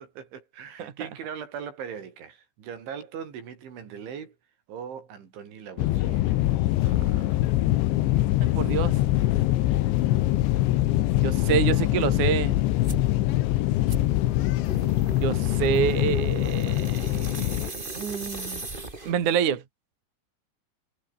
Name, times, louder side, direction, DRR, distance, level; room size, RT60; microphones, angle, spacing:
voice 1, 0.0-4.4 4.7-6.4, right 7 dB, 65° right, 6.2 m, -40 dB
sound 1, 5.8-17.7, left 16 dB, 75° left, 3.2 m, -23 dB
voice 2, 6.9-7.3 8.4-9.0 11.2-12.6 15.2-18.6 19.0-19.6, right 8 dB, 45° right, 3.2 m, -27 dB
sound 2, 12.8-13.1 13.9-19.3, right 2 dB, 15° right, 2.3 m, -38 dB
omnidirectional pair, 5.9 m